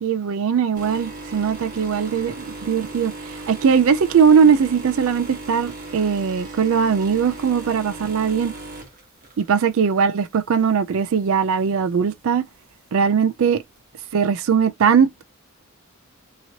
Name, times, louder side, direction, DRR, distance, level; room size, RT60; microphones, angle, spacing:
voice 1, 0.0-8.5 9.4-12.4 12.9-13.6 14.1-15.2, right 6 dB, 65° right, 0.4 m, -20 dB
sound 1, 0.7-9.9 10.3-10.6 11.5-11.6, right 2 dB, 40° right, 1.2 m, -37 dB
2.9 x 2.8 x 2.8 m
head